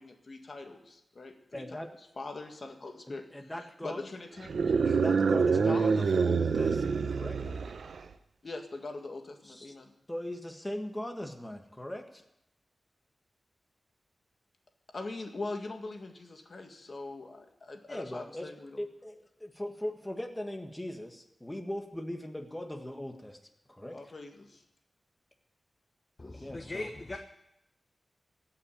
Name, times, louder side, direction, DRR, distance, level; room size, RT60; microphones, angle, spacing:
voice 1, 0.0-1.9 2.2-3.3 3.6-5.0 5.7-5.8 8.4-9.9 14.9-18.8 23.9-24.6, left 3 dB, 55° left, 4 dB, 1.8 m, -42 dB
voice 2, 1.5-1.9 3.1-4.0 4.8-7.4 9.4-9.7 10.1-12.2 17.9-18.5 18.8-23.4 23.7-24.0 26.4-26.9, left 1 dB, 15° left, 5 dB, 1.6 m, -39 dB
sound 1, 4.4-8.1, right 5 dB, 80° right, 0.7 m, -27 dB
voice 3, 26.2-27.2, left 2 dB, 40° left, 5 dB, 1.1 m, -39 dB
16.5 x 5.9 x 10.0 m, 0.85 s
cardioid pair, 55°, 0 cm